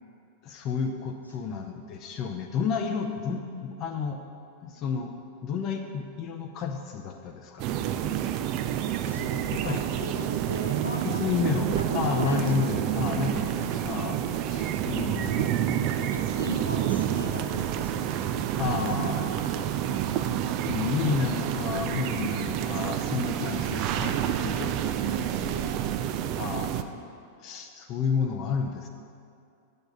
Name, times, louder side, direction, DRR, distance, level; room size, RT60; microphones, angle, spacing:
voice 1, 0.4-4.2 4.6-5.1 5.4-7.6 9.5-9.8 11.0-14.2 14.4-15.5 18.6-19.3 20.7-25.0 26.4-26.8 27.4-28.9, left 6 dB, 35° left, 4 dB, 0.6 m, -31 dB
voice 2, 3.3-3.6 9.1-12.7 16.0-18.5 25.0-25.8, right 1 dB, 85° left, -1 dB, 1.3 m, -38 dB
sound 1, 7.6-26.8, right 10 dB, 40° right, 0.4 m, -29 dB
9.0 x 6.9 x 5.4 m, 2.5 s
figure-of-eight pair, 90°, 0 cm